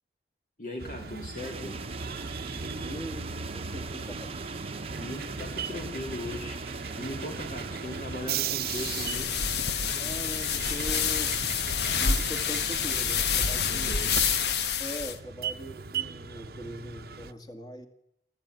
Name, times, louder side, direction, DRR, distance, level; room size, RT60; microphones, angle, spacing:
voice 1, 0.6-2.0 5.0-9.4 13.7-14.2, left 1 dB, 50° left, 2 dB, 2.8 m, -39 dB
sound 1, 0.8-17.3, right 6 dB, 60° right, 0.9 m, -38 dB
sound 2, 1.4-10.3, right 4 dB, 35° right, 1.0 m, -41 dB
voice 2, 2.5-4.5 10.0-11.5 11.9-14.0 14.8-17.9, equal, 25° left, 7 dB, 2.2 m, -41 dB
sound 3, 8.6-15.2, left 6 dB, 70° left, 1.3 m, -28 dB
28.0 x 13.5 x 9.3 m, 0.78 s
head